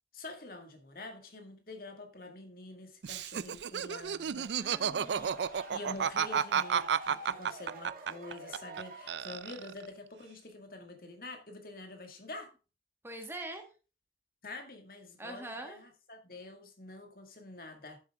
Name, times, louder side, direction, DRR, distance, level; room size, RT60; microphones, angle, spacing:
voice 1, 0.1-4.5 5.5-12.5 14.4-18.0, left 2 dB, 55° left, 1.9 m, -47 dB
Laughter, 3.0-8.8 9.1-9.9, right 7 dB, 80° right, 0.4 m, -32 dB
voice 2, 4.6-5.4 13.0-13.6 15.2-15.8, right 1 dB, 15° right, 1.4 m, -43 dB
sound 1, 4.7-9.7, right 2 dB, 50° right, 2.3 m, -48 dB
11.0 x 7.3 x 3.5 m
head